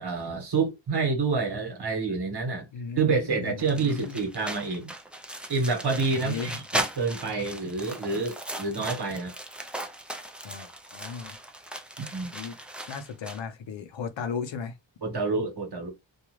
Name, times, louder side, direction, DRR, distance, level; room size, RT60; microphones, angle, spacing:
voice 1, 0.0-2.7 3.0-4.9 5.5-9.3 12.0-12.3 15.0-15.9, right 4 dB, 60° right, 1.2 m, -28 dB
voice 2, 2.7-4.2 6.1-6.6 10.4-11.4 12.3-12.6 12.9-14.7, left 5 dB, 75° left, 0.7 m, -36 dB
sound 1, 3.6-13.4, right 1 dB, 5° right, 0.4 m, -37 dB
2.4 x 2.4 x 3.0 m
wide cardioid pair, 100°, 46 cm